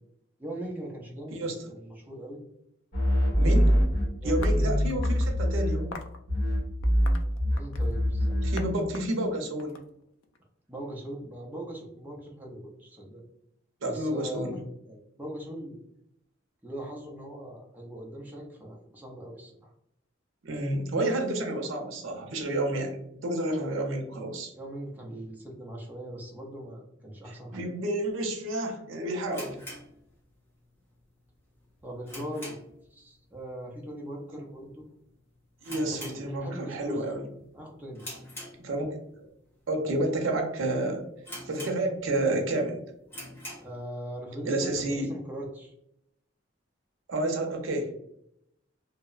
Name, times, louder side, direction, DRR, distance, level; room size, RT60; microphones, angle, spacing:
voice 1, 0.4-2.4 4.2-4.6 7.5-8.7 10.7-13.2 13.9-14.6 14.9-15.8 16.6-19.7 24.6-27.6 31.8-32.5 32.9-34.9 35.8-37.1 37.5-38.0 43.6-45.7, right 1 dB, 10° right, -2 dB, 0.4 m, -40 dB
sound 1, 2.9-6.0 6.3-8.8, equal, 55° left, 1.0 m, -24 dB
voice 2, 3.4-3.8 4.2-5.9 8.4-9.8 13.8-14.5 20.4-24.5 27.3-29.6 35.6-37.2 38.6-38.9 39.2-39.3 39.7-41.0 41.5-42.8 44.5-45.1 47.1-47.9, right 1 dB, 85° right, 3 dB, 0.5 m, -30 dB
sound 2, 4.4-5.3 5.9-6.2 6.8-8.0 8.6-8.7 8.9-10.4, left 4 dB, 80° left, 0.3 m, -43 dB
sound 3, 29.3-30.6 30.9-31.0 31.5-32.9 33.2-33.5 33.8-33.9 34.5-34.8 35.1-35.2 35.6-36.8 37.1-37.4 38.0-39.1 39.7-39.8 40.3-40.4 40.7-40.8 41.2-42.2 42.6-42.7 43.0-43.8, left 1 dB, 10° left, 0.8 m, -43 dB
2.7 x 2.0 x 2.3 m, 0.78 s
head